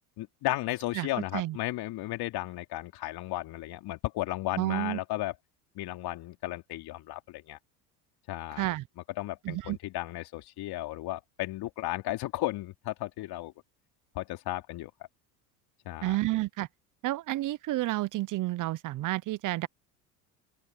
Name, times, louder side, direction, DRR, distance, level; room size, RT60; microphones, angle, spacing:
voice 1, 0.2-5.3 5.8-7.6 8.3-8.7 9.2-13.5 14.2-14.9 15.9-16.2, left 16 dB, 55° left, 3.4 m, -34 dB
voice 2, 4.6-5.0 8.6-8.8 9.4-9.8 16.0-16.7 17.0-19.7, right 17 dB, 45° right, 0.8 m, -30 dB
open air
hypercardioid pair, 80°, 45 cm